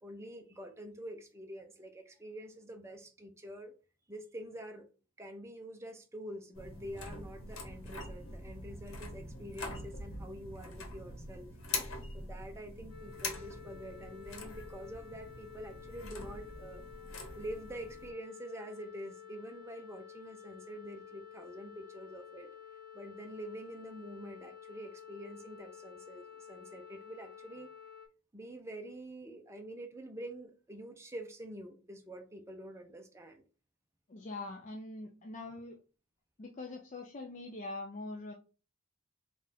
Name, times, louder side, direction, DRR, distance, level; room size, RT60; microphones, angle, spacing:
voice 1, 0.0-3.7 4.1-4.8 5.2-11.5 12.1-16.8 17.4-22.5 22.9-27.7 28.3-33.4, right 1 dB, 10° right, 4 dB, 0.6 m, -46 dB
sound 1, 6.5-18.1, left 2 dB, 65° left, 1.1 m, -44 dB
sound 2, 12.9-28.1, left 9 dB, 10° left, 1.6 m, -52 dB
voice 2, 34.1-35.8 36.4-38.3, left 2 dB, 35° left, 1 dB, 0.4 m, -43 dB
3.9 x 2.4 x 4.1 m, 0.34 s
head